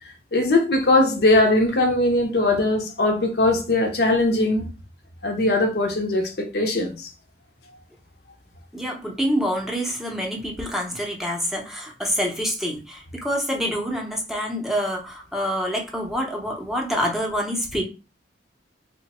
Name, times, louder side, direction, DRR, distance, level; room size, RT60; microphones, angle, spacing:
voice 1, 0.3-4.7 5.2-7.1, left 2 dB, 60° left, 0.6 m, -20 dB
voice 2, 8.7-17.8, equal, ahead, 0.6 m, -26 dB
3.0 x 2.1 x 4.1 m
head